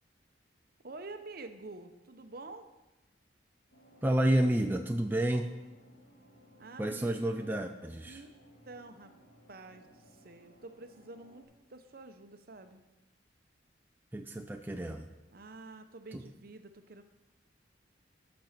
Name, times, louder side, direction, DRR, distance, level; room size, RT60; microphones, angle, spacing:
voice 1, 0.8-2.7 6.6-7.7 8.0-8.3 8.7-9.1 9.5-12.8 15.3-17.0, right 3 dB, 50° right, 8 dB, 0.7 m, -48 dB
sound 1, 3.7-11.4, equal, 65° left, 3.7 m, -60 dB
voice 2, 4.0-5.5 6.8-8.2 14.1-15.1 16.1-16.2, right 1 dB, 10° right, 4 dB, 0.4 m, -30 dB
12.0 x 5.2 x 5.9 m, 1.1 s
head